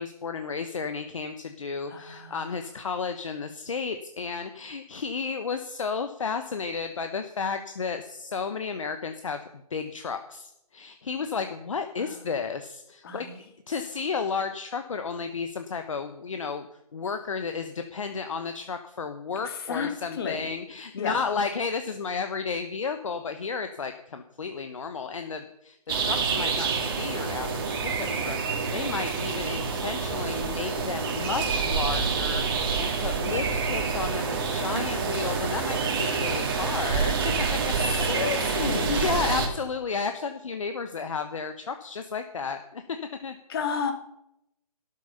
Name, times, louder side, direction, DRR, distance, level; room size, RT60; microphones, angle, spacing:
voice 1, 0.0-9.4 9.7-16.7 16.9-37.2 37.6-38.1 38.4-42.8 43.2-43.4, left 5 dB, 55° left, 8 dB, 1.2 m, -33 dB
voice 2, 1.9-2.6 12.0-12.1 13.0-13.3 19.4-20.5 21.0-21.2 36.5-37.2 38.0-39.0 43.5-43.9, left 6 dB, 40° left, 5 dB, 2.4 m, -32 dB
sound 1, 25.9-39.5, right 5 dB, 35° right, 2.4 m, -27 dB
12.5 x 11.0 x 5.6 m, 0.84 s
figure-of-eight pair, 145°, 20 cm